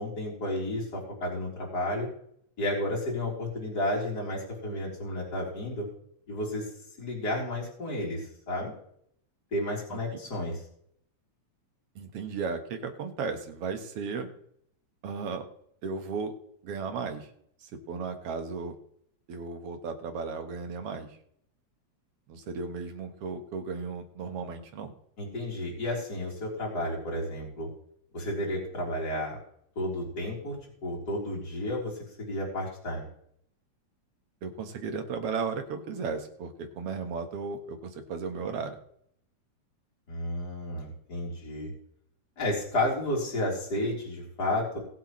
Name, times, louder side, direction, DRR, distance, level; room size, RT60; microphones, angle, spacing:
voice 1, 0.0-2.1 2.6-5.9 6.3-6.7 7.0-8.7 9.5-10.6 25.2-27.7 28.1-29.4 29.8-30.6 30.8-33.1 40.1-41.7 42.4-44.8, left 1 dB, 30° left, -4 dB, 4.2 m, -32 dB
voice 2, 12.0-14.3 15.0-15.5 15.8-16.3 16.6-17.3 17.6-18.7 19.3-21.1 22.3-24.9 34.4-38.8, right 5 dB, 55° right, 6 dB, 2.1 m, -35 dB
20.5 x 7.9 x 3.2 m, 0.69 s
omnidirectional pair, 3.4 m